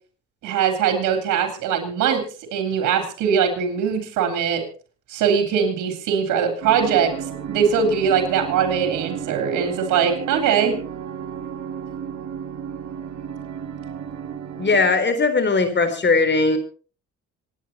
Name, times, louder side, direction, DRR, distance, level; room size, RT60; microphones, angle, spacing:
voice 1, 0.4-2.2 2.5-4.6 5.1-7.1 7.5-10.8, right 7 dB, 85° right, 5 dB, 3.5 m, -21 dB
sound 1, 6.6-15.0, right 8 dB, 65° right, 2.5 m, -33 dB
voice 2, 14.6-16.6, left 3 dB, 35° left, 10 dB, 3.7 m, -19 dB
26.5 x 9.9 x 4.2 m, 0.39 s
cardioid pair, 90°, 30 cm